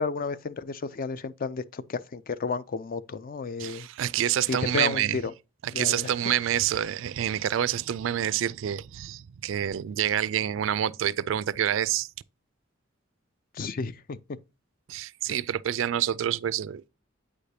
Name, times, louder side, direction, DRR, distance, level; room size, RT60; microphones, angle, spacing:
voice 1, 0.0-3.9 4.5-5.3 5.7-6.1 13.5-14.2 15.3-15.4, left 4 dB, 45° left, 0.4 m, -32 dB
voice 2, 3.6-5.2 5.6-12.1 14.9-16.9, right 10 dB, 75° right, 0.3 m, -27 dB
8.4 x 5.0 x 2.7 m
head